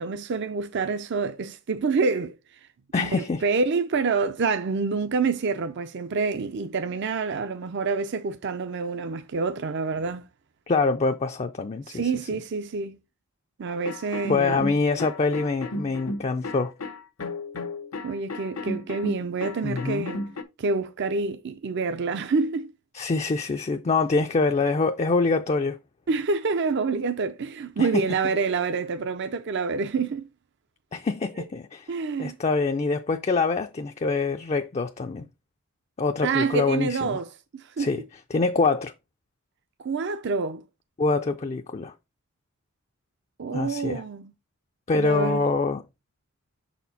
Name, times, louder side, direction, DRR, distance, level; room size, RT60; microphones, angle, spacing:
voice 1, 0.0-2.4 3.0-10.2 11.9-13.0 13.6-14.7 18.0-20.2 20.6-22.7 26.1-30.3 31.4-31.5 31.9-32.4 36.2-38.0 39.8-40.6 43.4-44.3 44.9-45.4, right 4 dB, 55° right, 0.5 m, -27 dB
voice 2, 2.9-3.4 10.7-12.0 14.3-16.7 19.6-20.1 22.9-25.8 27.8-27.9 30.9-31.9 32.2-35.3 36.0-37.2 37.8-38.0 38.3-38.9 41.0-41.9 43.5-44.0 44.9-45.8, left 3 dB, 30° left, 0.4 m, -25 dB
sound 1, 13.8-20.4, left 2 dB, 85° left, 0.9 m, -34 dB
6.4 x 4.3 x 4.0 m
head